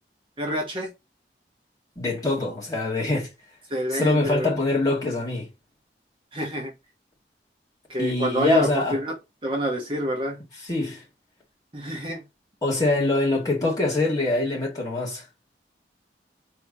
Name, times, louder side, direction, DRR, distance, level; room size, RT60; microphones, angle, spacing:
voice 1, 0.4-0.9 3.7-4.6 6.3-6.7 7.9-9.1 9.4-10.4 11.7-12.2, equal, 30° right, 1.0 m, -27 dB
voice 2, 2.0-3.3 3.9-5.5 8.0-8.9 10.7-11.0 12.6-15.2, left 2 dB, 20° left, 2.1 m, -24 dB
4.6 x 3.3 x 2.8 m
head